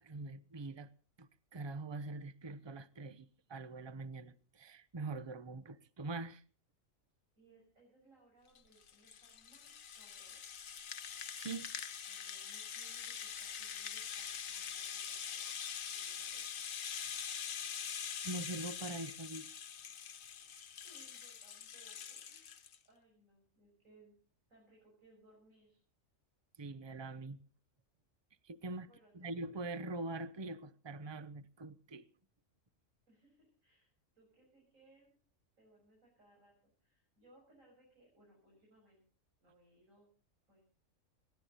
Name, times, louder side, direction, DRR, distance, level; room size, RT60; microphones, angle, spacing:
voice 1, 0.0-0.9 1.2-6.4 11.3-11.7 17.1-17.4 18.2-19.5 26.6-27.4 28.4-28.9 29.1-32.0, right 2 dB, 25° right, 0.7 m, -44 dB
voice 2, 7.3-10.6 12.1-16.5 20.7-24.1 24.5-25.8 28.8-29.4 33.1-35.2 35.6-39.0 39.4-40.1 40.5-40.6, right 1 dB, 75° right, 6.8 m, -67 dB
Rattle (instrument), 8.6-22.8, left 8 dB, 80° left, 1.4 m, -44 dB
28.0 x 11.5 x 4.0 m
omnidirectional pair, 1.4 m